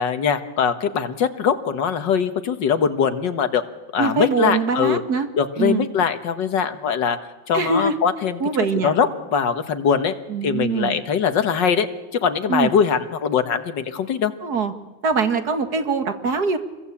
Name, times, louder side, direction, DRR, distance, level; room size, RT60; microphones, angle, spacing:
voice 1, 0.0-3.6 3.9-5.0 5.3-7.2 7.5-8.4 8.8-10.1 10.4-11.9 12.1-14.3, left 7 dB, 65° left, 9 dB, 2.0 m, -21 dB
voice 2, 4.0-5.3 5.6-5.9 7.5-8.0 8.4-8.9 10.3-11.0 12.5-12.7 14.4-14.7 15.0-16.6, right 4 dB, 55° right, 8 dB, 2.2 m, -22 dB
27.5 x 21.5 x 8.6 m, 1.2 s
omnidirectional pair, 2.1 m